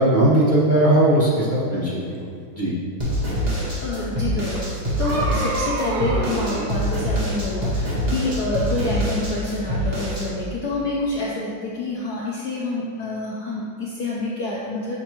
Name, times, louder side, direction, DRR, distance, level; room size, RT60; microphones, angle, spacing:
voice 1, 0.0-2.0 2.5-2.7, right 1 dB, 55° right, -10 dB, 0.5 m, -18 dB
sound 1, 3.0-10.3, equal, 25° right, 1.2 m, -25 dB
voice 2, 3.3-15.0, left 2 dB, 70° left, -4 dB, 1.0 m, -28 dB
sound 2, 4.6-6.8, right 2 dB, 85° right, 1.6 m, -28 dB
6.3 x 5.9 x 2.9 m, 2.4 s
omnidirectional pair, 2.3 m